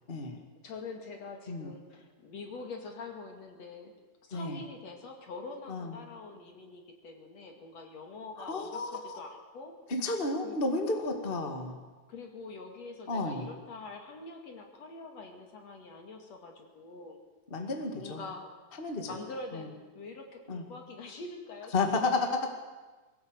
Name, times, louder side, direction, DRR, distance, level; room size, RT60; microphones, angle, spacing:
voice 1, 0.1-0.4 1.5-1.7 4.3-4.6 5.7-6.0 8.4-9.2 9.9-11.8 13.1-13.5 17.5-18.2 18.8-19.1 19.5-19.7 20.5-20.6 21.7-22.5, left 3 dB, 20° left, 3 dB, 1.9 m, -32 dB
voice 2, 0.6-3.9 4.2-9.7 10.4-10.6 12.1-17.2 18.0-18.4 18.7-22.3, left 3 dB, 60° left, 3 dB, 3.3 m, -45 dB
22.5 x 16.5 x 8.0 m, 1.3 s
omnidirectional pair, 3.5 m